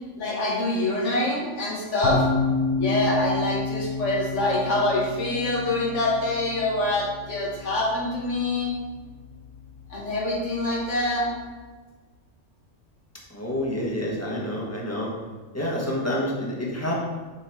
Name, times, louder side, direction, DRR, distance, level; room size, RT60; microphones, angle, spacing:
voice 1, 0.2-2.3 2.8-8.7 9.9-11.3, left 1 dB, 65° left, -4 dB, 1.8 m, -25 dB
sound 1, 2.0-11.4, left 4 dB, 45° left, 0.9 m, -31 dB
voice 2, 13.3-15.1 15.5-17.0, left 1 dB, 10° left, -4 dB, 1.3 m, -28 dB
7.0 x 3.8 x 4.7 m, 1.4 s
omnidirectional pair, 1.3 m